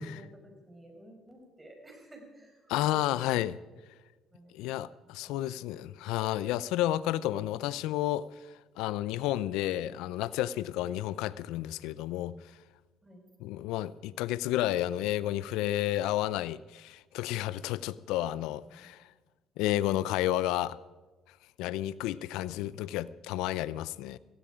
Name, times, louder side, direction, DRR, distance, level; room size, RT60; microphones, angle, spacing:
voice 1, 0.0-3.5 4.3-4.5 5.2-5.4 5.7-6.0 10.7-10.8 13.0-13.2 18.6-18.9, right 1 dB, 15° right, 4.9 m, -53 dB
voice 2, 2.7-3.5 4.5-8.3 8.8-12.3 13.4-19.0 19.6-20.8 21.6-24.2, left 14 dB, 80° left, 0.5 m, -31 dB
17.5 x 15.5 x 5.0 m
supercardioid pair, 80°, 0 cm